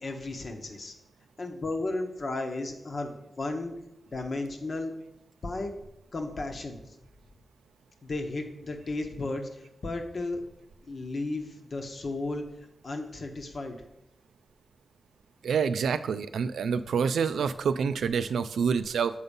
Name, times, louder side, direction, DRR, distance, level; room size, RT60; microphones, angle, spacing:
voice 1, 0.0-0.9 1.4-3.7 4.1-4.9 5.4-5.7 6.1-6.8 8.0-10.4 10.9-12.4 12.8-13.8, left 2 dB, 55° left, 4 dB, 1.1 m, -34 dB
voice 2, 15.4-19.1, right 6 dB, 85° right, 12 dB, 0.3 m, -27 dB
6.9 x 3.9 x 5.3 m, 0.86 s
cardioid pair, 60°, 0 cm